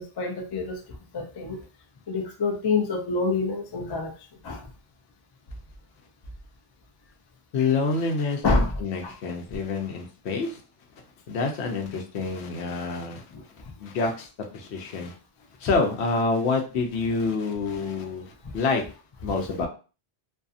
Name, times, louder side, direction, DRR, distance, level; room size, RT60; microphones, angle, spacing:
voice 1, 0.2-0.8 1.1-1.6 2.1-4.1 4.5-4.6 8.4-8.7, left 3 dB, 40° left, 0.3 m, -26 dB
voice 2, 7.5-10.6 11.3-13.2 13.8-14.3 14.5-15.1 15.6-18.8 19.2-19.7, left 4 dB, 85° left, 0.9 m, -27 dB
2.6 x 2.4 x 2.4 m
omnidirectional pair, 1.1 m